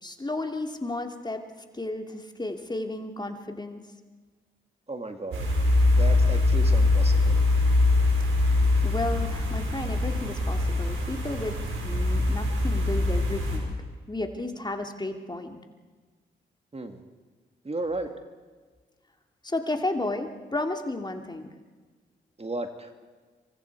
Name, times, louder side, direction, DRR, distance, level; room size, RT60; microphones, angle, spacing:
voice 1, 0.0-1.4 1.7-3.8 8.8-13.7 14.1-15.6 19.4-21.5, left 2 dB, 20° left, 5 dB, 2.6 m, -33 dB
voice 2, 4.9-5.5 5.9-7.4 16.7-17.0 17.6-18.1 22.4-22.9, right 2 dB, 30° right, 6 dB, 2.4 m, -34 dB
sound 1, 5.3-13.6, left 2 dB, 75° right, 4.9 m, -23 dB
27.5 x 23.5 x 4.8 m, 1.4 s
supercardioid pair, 45°, 21 cm